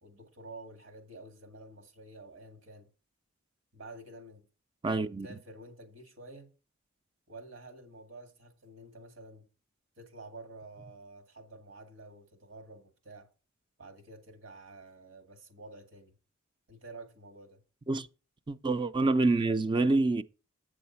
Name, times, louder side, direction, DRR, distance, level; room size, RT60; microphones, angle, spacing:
voice 1, 0.0-2.9 3.7-4.4 5.2-6.5 7.3-9.5 10.0-13.3 13.8-16.2 16.7-17.6, right 2 dB, 65° right, 2.0 m, -50 dB
voice 2, 4.8-5.3 17.9-18.1 18.5-20.2, right 3 dB, 25° right, 0.4 m, -27 dB
8.5 x 6.2 x 5.6 m
head